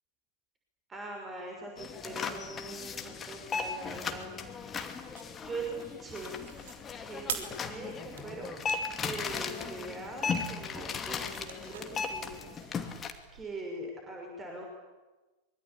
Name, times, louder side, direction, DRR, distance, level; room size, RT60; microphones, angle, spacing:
voice 1, 0.9-4.7 5.4-6.4 7.0-8.5 9.0-12.6 13.3-14.6, right 2 dB, 20° right, 1 dB, 5.9 m, -42 dB
sound 1, 1.8-13.1, left 5 dB, 20° left, 2.5 m, -37 dB
sound 2, 4.6-13.5, right 8 dB, 60° right, 3.5 m, -47 dB
24.5 x 23.0 x 8.8 m, 1.2 s
figure-of-eight pair, 90°, 0 cm